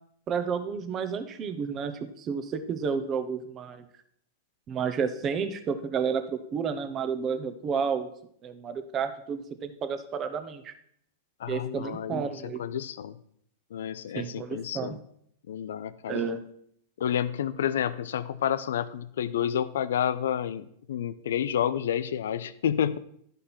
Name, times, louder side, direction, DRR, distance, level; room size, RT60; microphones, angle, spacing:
voice 1, 0.3-3.8 4.7-8.1 8.4-10.7 11.5-12.6 14.1-15.0 16.1-16.4, right 6 dB, 30° right, 9 dB, 0.9 m, -31 dB
voice 2, 11.4-13.2 13.7-15.0 15.5-16.2 17.0-23.0, left 9 dB, 80° left, 15 dB, 0.4 m, -30 dB
11.0 x 5.2 x 4.4 m, 0.68 s
hypercardioid pair, 115°, 0 cm